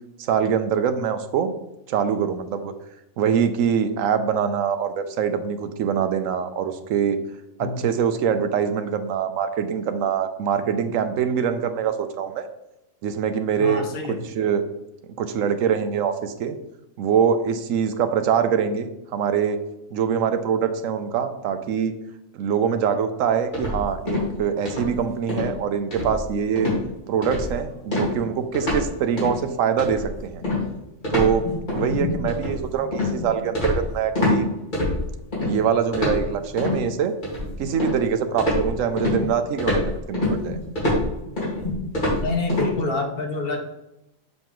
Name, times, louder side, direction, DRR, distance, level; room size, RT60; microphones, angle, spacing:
voice 1, 0.2-1.5 1.9-2.7 3.2-7.2 7.6-12.5 13.0-13.8 14.1-14.6 15.2-16.6 17.0-19.6 19.9-22.0 22.3-26.7 27.1-30.4 31.1-34.5 35.4-37.1 37.6-40.6, right 7 dB, 80° right, 9 dB, 1.0 m, -24 dB
voice 2, 13.6-14.2 31.8-32.0 42.2-43.6, left 3 dB, 50° left, 4 dB, 0.9 m, -27 dB
sound 1, 23.5-24.4 24.6-25.0 25.3-25.5 25.9-26.3 26.6-26.8 27.2-27.6 27.9-28.9 29.2-29.4 29.8-34.4 34.7-35.5 35.9-36.8 37.2-38.1 38.4-42.7, left 2 dB, 35° left, 2.1 m, -25 dB
6.4 x 5.4 x 3.0 m, 0.88 s
omnidirectional pair, 1.4 m